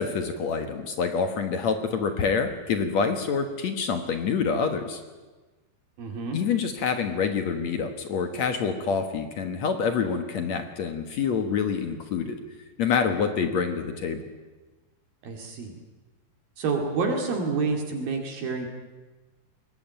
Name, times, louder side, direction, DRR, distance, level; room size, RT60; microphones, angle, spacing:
voice 1, 0.0-5.0 6.3-12.4 12.8-14.2, left 6 dB, 60° left, 7 dB, 2.1 m, -27 dB
voice 2, 6.0-6.4 15.2-15.7 16.6-18.7, right 4 dB, 65° right, 2 dB, 4.0 m, -28 dB
22.0 x 19.5 x 9.1 m, 1.2 s
omnidirectional pair, 4.6 m